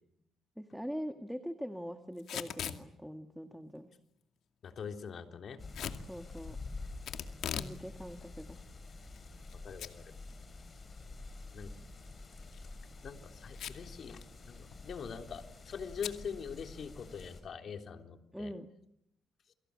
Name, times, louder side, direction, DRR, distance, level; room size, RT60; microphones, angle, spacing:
voice 1, 0.6-3.9 6.1-6.6 7.5-8.6 18.3-18.7, equal, ahead, 7 dB, 1.7 m, -42 dB
Packing tape duct tape / Tearing, 2.2-2.8 5.7-6.0 7.1-7.8 8.1-8.2 8.9-9.5 9.8-9.9 10.3-10.4 12.4-12.6 13.5-13.9 14.2-14.3 14.6-14.9 16.0-16.2, left 9 dB, 75° left, 2.3 m, -39 dB
voice 2, 4.6-5.6 9.6-10.1 11.5-11.7 13.0-18.5, left 6 dB, 50° left, 5 dB, 3.4 m, -43 dB
sound 1, 5.6-17.4, left 3 dB, 30° left, 7.3 m, -48 dB
29.0 x 24.0 x 8.6 m, 0.79 s
cardioid pair, 130°, 0 cm